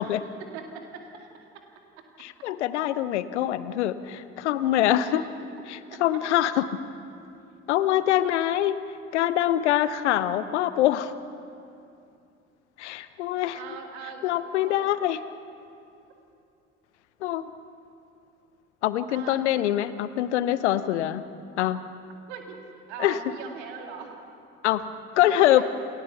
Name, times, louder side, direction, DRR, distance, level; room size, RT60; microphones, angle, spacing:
voice 1, 0.4-1.6 5.0-5.3 6.1-6.2 13.6-14.9 19.1-19.5 22.3-22.6 22.9-24.1 25.2-25.7, right 6 dB, 70° right, 3 dB, 2.2 m, -41 dB
voice 2, 2.2-5.2 5.7-6.7 7.7-8.8 9.1-11.1 12.8-13.6 14.2-15.2 17.2-17.4 18.8-21.2 21.6-21.8 23.0-23.2 24.6-24.8 25.2-25.6, left 12 dB, 75° left, 15 dB, 0.7 m, -24 dB
28.5 x 14.5 x 7.0 m, 2.5 s
figure-of-eight pair, 40°, 34 cm